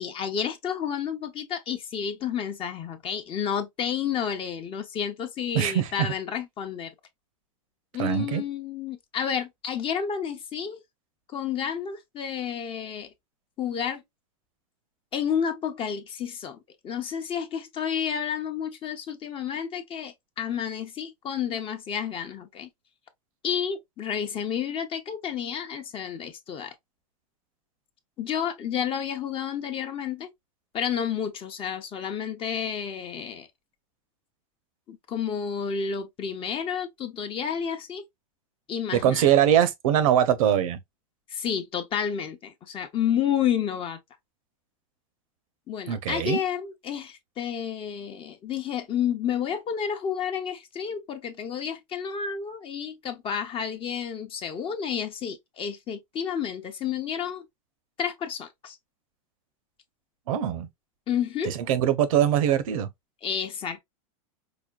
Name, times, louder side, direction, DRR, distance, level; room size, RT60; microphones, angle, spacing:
voice 1, 0.0-6.9 7.9-10.8 11.3-13.1 13.6-14.0 15.1-16.6 16.8-22.7 23.4-26.7 28.2-30.3 30.7-33.5 34.9-38.0 38.7-39.3 41.3-44.0 45.7-57.5 58.0-58.8 61.1-61.5 63.2-63.8, left 8 dB, 30° left, 0.7 m, -30 dB
voice 2, 5.5-6.1 8.0-8.4 38.9-40.8 45.9-46.4 60.3-60.7 61.4-62.9, right 10 dB, 70° right, 0.8 m, -22 dB
4.9 x 2.2 x 2.4 m
supercardioid pair, 125°, 18 cm